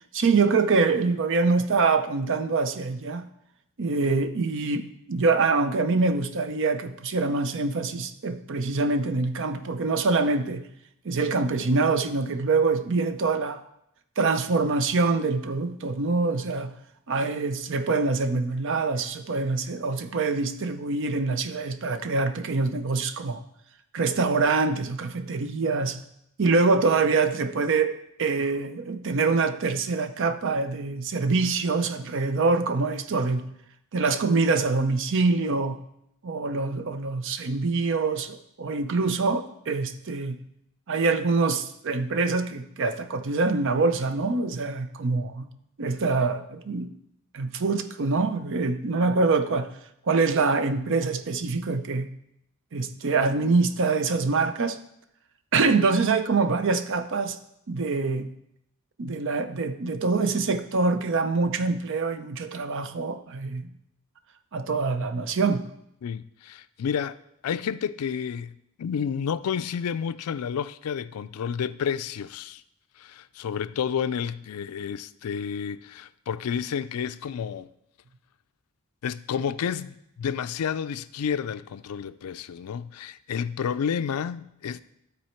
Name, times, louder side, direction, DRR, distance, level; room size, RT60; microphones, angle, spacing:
voice 1, 0.1-3.2 3.8-10.6 11.0-13.6 14.2-16.7 17.1-23.4 23.9-26.0 26.4-27.9 28.2-33.4 33.9-35.8 36.2-40.4 40.9-45.4 45.8-46.9 47.3-49.7 50.1-52.1 52.7-54.8 55.5-57.4 57.7-58.3 59.0-63.7 64.5-65.6, right 4 dB, 60° right, 0.6 m, -25 dB
voice 2, 66.0-67.2 67.4-72.6 73.0-77.7 79.0-84.8, left 7 dB, 80° left, 0.4 m, -30 dB
12.5 x 4.2 x 4.4 m
head